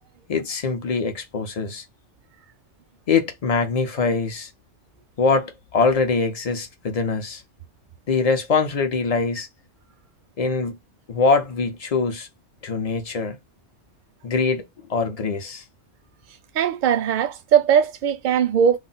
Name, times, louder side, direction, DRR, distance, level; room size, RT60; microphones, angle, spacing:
voice 1, 0.3-1.8 3.1-4.5 5.2-7.4 8.1-9.5 10.4-10.8 11.1-12.3 12.6-13.4 14.2-14.6 14.9-15.6, left 4 dB, 50° left, 0.5 m, -23 dB
voice 2, 16.5-18.8, right 8 dB, 55° right, 0.5 m, -19 dB
2.3 x 2.0 x 3.8 m
omnidirectional pair, 1.2 m